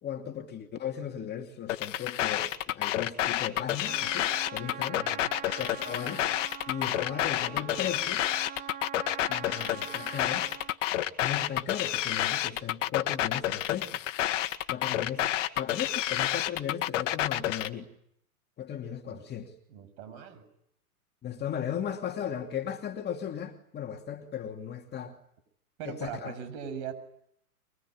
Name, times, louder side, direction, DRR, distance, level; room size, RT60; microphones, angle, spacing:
voice 1, 0.0-5.1 5.6-6.2 6.7-8.3 9.3-10.5 11.2-14.1 14.7-15.2 15.5-17.9 18.6-19.5 21.2-25.2 25.8-26.4, left 9 dB, 20° left, 4 dB, 2.6 m, -36 dB
sound 1, 1.7-17.7, left 13 dB, 55° left, 2.0 m, -29 dB
Trumpet, 3.8-10.8, right 10 dB, 20° right, 3.3 m, -43 dB
voice 2, 4.9-5.3 19.1-19.2 19.7-20.5 25.8-26.9, right 8 dB, 45° right, 11 dB, 7.8 m, -40 dB
24.5 x 24.0 x 9.8 m, 0.73 s
hypercardioid pair, 110°, 45 cm